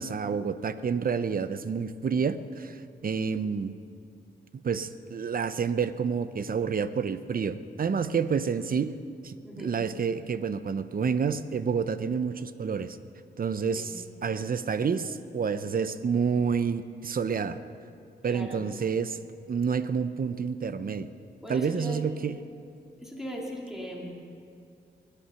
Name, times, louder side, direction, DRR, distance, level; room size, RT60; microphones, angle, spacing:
voice 1, 0.0-3.8 4.6-8.9 9.2-13.0 13.4-17.6 18.2-19.2 19.5-21.1 21.5-22.4, right 6 dB, 50° right, 12 dB, 0.7 m, -29 dB
voice 2, 9.4-9.7 13.7-13.9 18.2-18.6 21.4-22.0 23.0-24.1, equal, ahead, -3 dB, 2.5 m, -38 dB
21.0 x 10.0 x 5.7 m, 2.4 s
wide cardioid pair, 95°, 18 cm